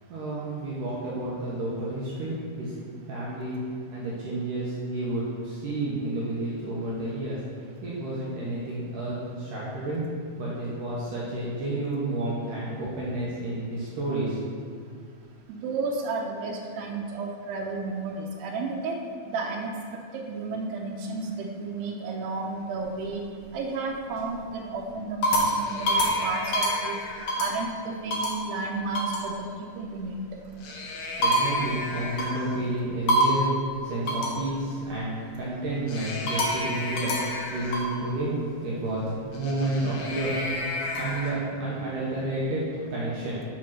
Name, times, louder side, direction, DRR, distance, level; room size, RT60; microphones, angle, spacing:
voice 1, 0.1-2.7 3.1-3.6 3.9-7.4 7.8-10.0 10.4-14.4 30.8-30.9 31.2-40.4 40.9-43.4, right 2 dB, 65° right, -7 dB, 2.4 m, -30 dB
voice 2, 15.5-19.0 19.3-19.7 20.3-23.2 23.5-27.0 27.4-30.2, right 3 dB, 90° right, 0 dB, 2.8 m, -32 dB
sound 1, 22.8-23.5 24.0-24.4 24.9-27.7 28.1-28.4 28.9-29.3 30.4-32.6 33.1-33.5 34.1-34.4 35.9-38.0 39.3-41.3, equal, 70° left, 1.8 m, -28 dB
7.4 x 5.1 x 5.9 m, 2.1 s
omnidirectional pair, 4.6 m